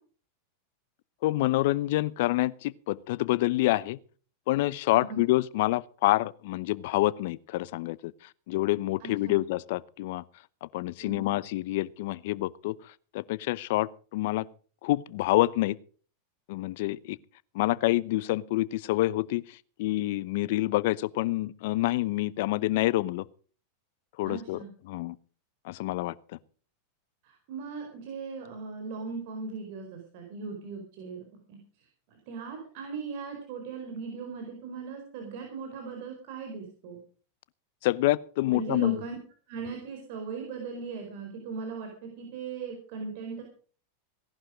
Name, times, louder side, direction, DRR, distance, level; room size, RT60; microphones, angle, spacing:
voice 1, 1.2-4.0 4.5-8.1 8.5-10.2 10.6-12.7 13.1-14.4 14.8-15.8 16.5-17.2 17.5-19.4 19.8-23.2 24.2-25.2 25.7-26.1 37.8-39.0, left 17 dB, 65° left, 0.8 m, -27 dB
voice 2, 4.9-5.2 9.0-9.4 11.0-11.3 24.2-24.7 27.2-31.6 32.3-37.0 38.5-39.1 39.5-43.4, right 5 dB, 60° right, 4.6 m, -38 dB
18.0 x 11.5 x 5.1 m
hypercardioid pair, 100°, 0 cm